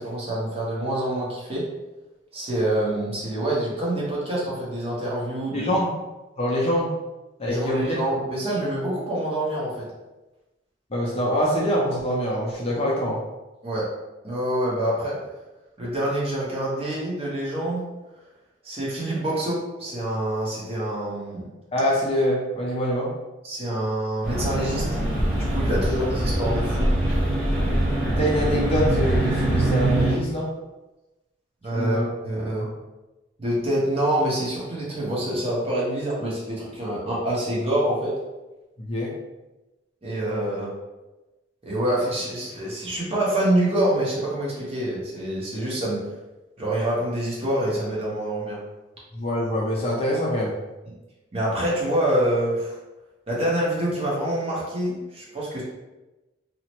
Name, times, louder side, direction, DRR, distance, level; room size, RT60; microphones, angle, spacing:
voice 1, 0.0-1.6 2.3-5.7 7.5-9.9 13.6-13.9 14.2-15.2 15.8-17.8 18.6-21.5 23.4-25.0 25.3-26.9 31.6-32.7 33.4-38.1 40.0-40.7 41.6-46.1 46.6-48.6 51.3-52.8 53.3-55.6, right 1 dB, 30° right, -6 dB, 0.8 m, -26 dB
voice 2, 5.5-5.9 6.4-6.9 7.4-8.0 10.9-13.2 21.7-23.1 25.9-26.0 28.1-30.5 31.7-32.1 38.8-39.1 49.1-50.6, equal, 30° left, -4 dB, 0.5 m, -24 dB
sound 1, 24.2-30.1, right 1 dB, 5° right, 1.0 m, -23 dB
2.8 x 2.0 x 2.9 m, 1.1 s
head